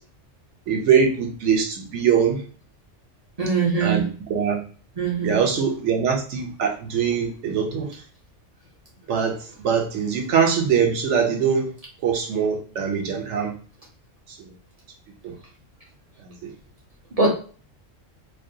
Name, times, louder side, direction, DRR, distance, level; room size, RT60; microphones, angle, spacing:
voice 1, 0.7-2.4 3.8-4.6 5.2-7.9 9.1-9.4 9.6-11.7 12.0-13.5 15.2-15.3, right 7 dB, 70° right, 3 dB, 0.9 m, -22 dB
voice 2, 3.4-4.0 5.0-5.4 17.2-17.3, right 4 dB, 45° right, -2 dB, 0.5 m, -21 dB
2.4 x 2.2 x 2.7 m, 0.40 s
omnidirectional pair, 1.3 m